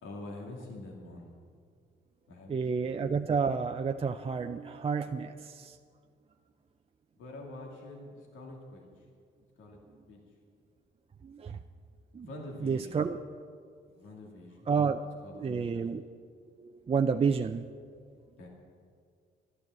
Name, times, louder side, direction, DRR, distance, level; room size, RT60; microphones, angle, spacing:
voice 1, 0.0-1.3 2.3-2.9 7.2-9.1 9.6-9.8 10.1-10.2 12.2-13.1 13.9-14.7 15.2-16.0 18.4-18.5, left 2 dB, 85° left, -1 dB, 2.4 m, -46 dB
voice 2, 2.5-5.8 11.2-11.6 12.1-12.3 12.6-13.2 14.7-15.0 15.3-16.0 16.6-17.6, right 5 dB, 30° right, 6 dB, 0.5 m, -30 dB
12.5 x 12.0 x 7.6 m, 2.2 s
cardioid pair, 90°, 20 cm